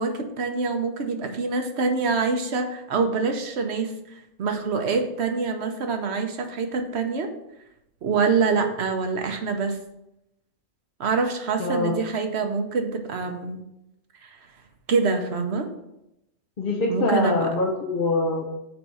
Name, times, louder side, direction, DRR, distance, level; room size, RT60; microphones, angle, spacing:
voice 1, 0.0-7.3 8.0-9.8 11.0-13.6 14.3-14.4 14.9-15.7 16.9-17.5, right 4 dB, 60° right, 5 dB, 1.0 m, -25 dB
voice 2, 11.6-12.0 15.2-15.5 16.6-18.4, left 2 dB, 45° left, -1 dB, 0.9 m, -24 dB
6.2 x 4.1 x 4.7 m, 0.86 s
omnidirectional pair, 1.3 m